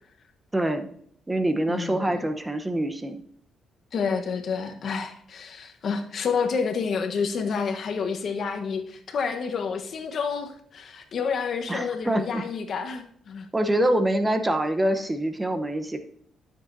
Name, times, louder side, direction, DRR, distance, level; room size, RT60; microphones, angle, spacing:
voice 1, 0.5-0.9 1.3-3.2 11.7-12.4 13.5-16.0, right 1 dB, 15° right, 0.8 m, -25 dB
voice 2, 1.7-2.2 3.9-13.5, left 5 dB, 55° left, 1.1 m, -29 dB
12.5 x 7.3 x 2.7 m
cardioid pair, 90°, 0 cm